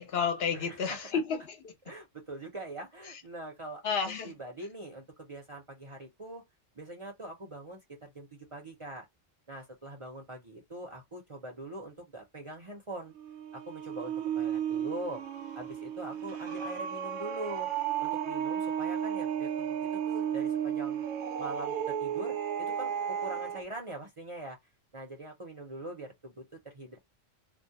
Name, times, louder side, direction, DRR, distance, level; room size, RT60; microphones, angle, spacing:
voice 1, 0.0-1.7 3.1-3.2 3.8-4.3, left 6 dB, 65° left, 0.8 m, -31 dB
voice 2, 0.5-1.0 1.8-6.4 6.7-9.0 9.5-13.1 13.5-15.2 15.6-17.7 18.0-21.1 21.4-24.6 24.9-27.0, right 1 dB, 35° right, 0.6 m, -43 dB
sound 1, 13.1-23.6, right 9 dB, 70° right, 0.8 m, -33 dB
2.2 x 2.0 x 2.7 m
omnidirectional pair, 1.2 m